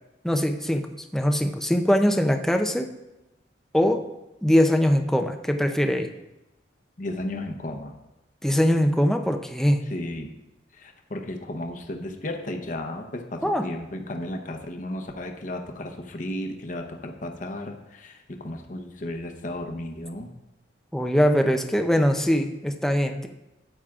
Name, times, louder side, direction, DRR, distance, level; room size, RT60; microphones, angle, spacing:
voice 1, 0.2-0.8 1.1-2.9 3.7-4.0 4.4-6.1 8.4-9.8 13.4-13.7 20.9-23.3, equal, ahead, 5 dB, 0.5 m, -22 dB
voice 2, 7.0-8.0 9.9-10.3 10.7-20.3, left 1 dB, 45° left, 3 dB, 0.8 m, -34 dB
13.0 x 8.9 x 2.4 m, 0.97 s
head